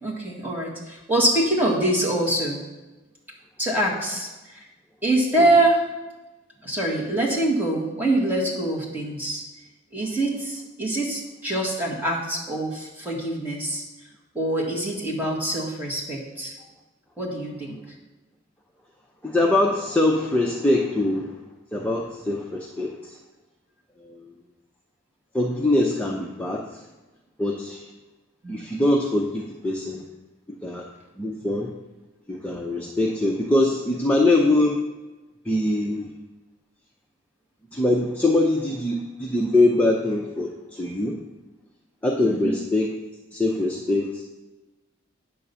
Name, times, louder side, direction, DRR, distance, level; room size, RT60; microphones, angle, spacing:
voice 1, 0.0-2.6 3.6-4.7 5.0-5.8 6.6-9.4 9.9-13.8 14.4-16.7 17.2-17.8 28.4-28.6 42.2-42.5, right 1 dB, 10° right, -3 dB, 1.6 m, -24 dB
voice 2, 19.2-21.3 21.7-23.2 24.0-24.3 25.3-26.8 27.4-27.9 28.5-30.1 30.6-30.9 31.2-31.7 32.3-34.8 35.4-36.1 37.7-41.2 42.0-42.9 43.3-44.2, left 2 dB, 5° left, -1 dB, 0.6 m, -23 dB
9.6 x 3.8 x 6.8 m, 1.1 s
head